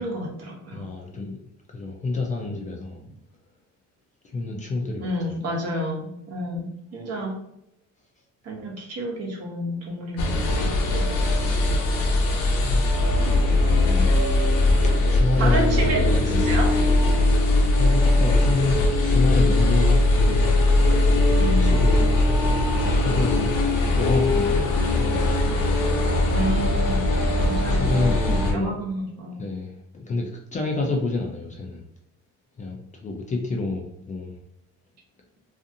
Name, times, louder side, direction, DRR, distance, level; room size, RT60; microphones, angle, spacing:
voice 1, 0.0-0.9 3.0-3.1 5.0-7.4 8.4-11.1 13.9-14.1 15.4-16.7 21.4-21.7 26.3-27.1 27.4-29.4, right 1 dB, 50° right, 0 dB, 0.8 m, -30 dB
voice 2, 0.7-1.4 1.7-3.0 4.2-5.4 12.6-13.1 15.1-16.4 17.7-20.4 21.1-22.1 23.0-25.7 27.7-28.8 29.4-31.8 32.6-34.4, left 3 dB, 25° left, 0 dB, 0.3 m, -28 dB
sound 1, 10.2-28.5, left 2 dB, 75° left, 0.8 m, -20 dB
2.5 x 2.4 x 2.6 m, 0.81 s
cardioid pair, 135°, 32 cm